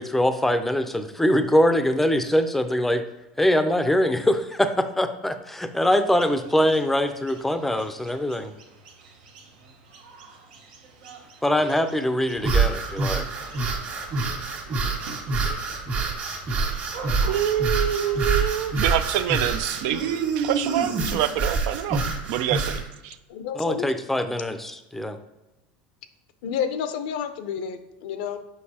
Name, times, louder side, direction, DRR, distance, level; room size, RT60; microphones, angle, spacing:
voice 1, 0.0-3.0 3.4-8.5 11.4-13.2 23.5-25.2, left 1 dB, 5° left, 9 dB, 0.5 m, -23 dB
sound 1, 5.8-21.8, right 4 dB, 85° right, 1.1 m, -47 dB
sound 2, 12.4-22.8, right 4 dB, 40° right, 1.6 m, -26 dB
voice 2, 17.3-22.0 22.3-23.2, right 10 dB, 70° right, 12 dB, 0.4 m, -26 dB
voice 3, 23.3-23.9 26.4-28.4, left 8 dB, 75° left, 10 dB, 0.5 m, -30 dB
6.5 x 5.2 x 2.8 m, 1.0 s
supercardioid pair, 115°, 5 cm